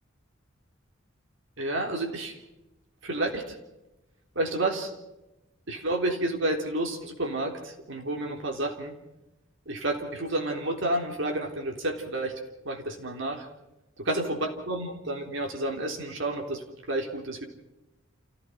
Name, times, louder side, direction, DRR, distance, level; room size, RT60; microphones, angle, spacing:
voice 1, 1.6-2.4 3.0-3.6 4.4-4.9 5.7-9.0 9.7-12.3 12.7-13.5 14.1-17.5, right 1 dB, 65° right, 3 dB, 3.6 m, -30 dB
29.5 x 15.5 x 5.8 m, 0.95 s
head